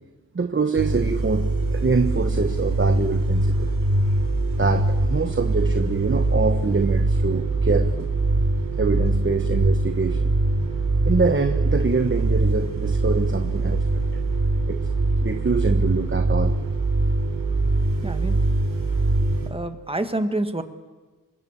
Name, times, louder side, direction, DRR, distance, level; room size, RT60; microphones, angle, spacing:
voice 1, 0.3-3.7 4.6-8.1 8.8-10.3 11.0-14.2 14.7-14.9 15.2-16.6, right 4 dB, 35° right, 8 dB, 1.1 m, -24 dB
sound 1, 0.8-19.5, right 2 dB, 70° right, 4.0 m, -22 dB
voice 2, 18.0-18.4 19.4-20.6, right 1 dB, 15° right, 8 dB, 1.7 m, -27 dB
26.0 x 21.5 x 7.4 m, 1.3 s
wide cardioid pair, 75°, 35 cm